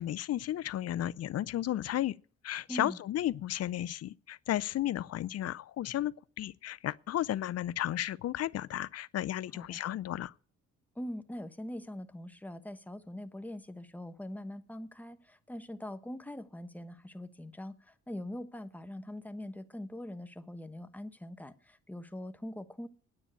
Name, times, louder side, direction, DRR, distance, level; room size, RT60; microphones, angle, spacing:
voice 1, 0.0-2.2 2.4-10.3, left 13 dB, 55° left, 0.6 m, -33 dB
voice 2, 10.9-22.9, left 1 dB, 5° left, 1.1 m, -42 dB
9.9 x 8.3 x 8.8 m
cardioid pair, 90°, 30 cm